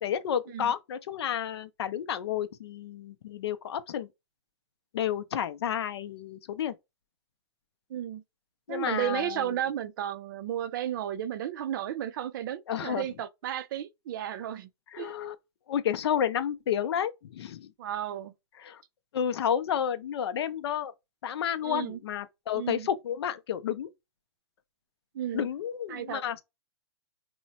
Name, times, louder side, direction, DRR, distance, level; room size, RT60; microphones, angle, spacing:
voice 1, 0.0-4.1 4.9-6.8 8.7-9.6 12.7-13.1 14.9-15.4 15.7-17.7 18.5-18.8 19.1-20.9 21.2-23.9 25.3-26.4, left 9 dB, 65° left, 0.5 m, -31 dB
voice 2, 7.9-8.2 8.7-14.7 15.0-15.1 17.8-18.3 21.6-22.0 22.6-22.9 25.1-25.5 25.9-26.2, right 11 dB, 45° right, 0.4 m, -33 dB
2.8 x 2.1 x 2.7 m
hypercardioid pair, 150°, 15 cm